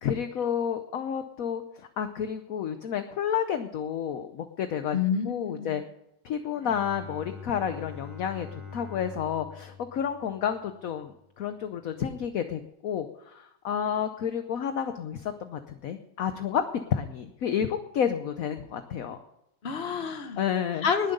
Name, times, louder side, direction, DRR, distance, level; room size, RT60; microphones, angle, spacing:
voice 1, 0.0-5.0 5.2-5.8 6.2-16.6 16.9-19.2 20.4-20.9, left 8 dB, 60° left, 8 dB, 1.1 m, -30 dB
voice 2, 4.9-5.8 19.6-20.4 20.8-21.1, left 6 dB, 40° left, 7 dB, 1.3 m, -28 dB
Bowed string instrument, 6.5-11.1, left 5 dB, 5° right, 2.2 m, -44 dB
19.5 x 7.4 x 5.4 m, 0.81 s
omnidirectional pair, 1.9 m